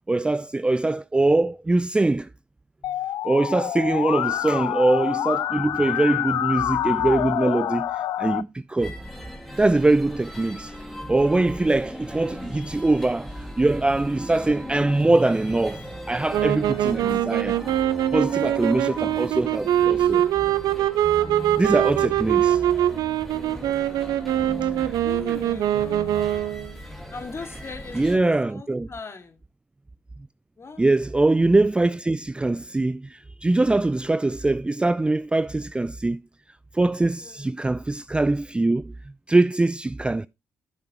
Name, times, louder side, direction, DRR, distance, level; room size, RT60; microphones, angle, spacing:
voice 1, 0.1-2.3 3.2-7.9 8.2-8.9 9.6-10.7 11.1-17.6 18.1-20.2 21.6-22.6 24.8-24.9 27.9-28.9 30.8-36.2 36.7-38.9 39.3-40.3, right 2 dB, 15° right, 0.4 m, -22 dB
Musical instrument, 2.8-8.4, left 12 dB, 65° left, 0.4 m, -26 dB
sound 1, 8.8-28.2, equal, ahead, 2.0 m, -38 dB
sound 2, 16.3-26.7, right 12 dB, 65° right, 0.6 m, -23 dB
voice 2, 23.6-26.6 27.1-29.4 30.6-30.8 37.2-37.5, left 4 dB, 40° left, 2.2 m, -41 dB
12.0 x 6.6 x 3.0 m
hypercardioid pair, 40°, 7 cm